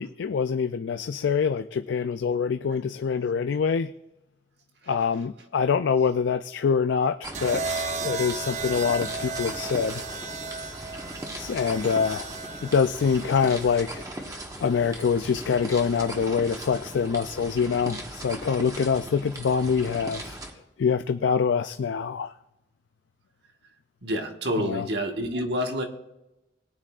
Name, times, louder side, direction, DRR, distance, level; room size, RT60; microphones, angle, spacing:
voice 1, 0.0-3.9 4.9-10.0 11.4-12.3 12.6-14.3 14.6-20.4 20.8-22.3 24.6-24.9, left 6 dB, 80° left, 10 dB, 0.4 m, -25 dB
sound 1, 7.2-20.5, right 1 dB, 20° right, 1.3 m, -39 dB
sound 2, 7.3-15.5 16.7-17.1, right 4 dB, 40° right, 0.7 m, -36 dB
voice 2, 24.0-25.9, equal, 65° right, 3 dB, 1.5 m, -28 dB
19.5 x 9.9 x 2.5 m, 0.92 s
head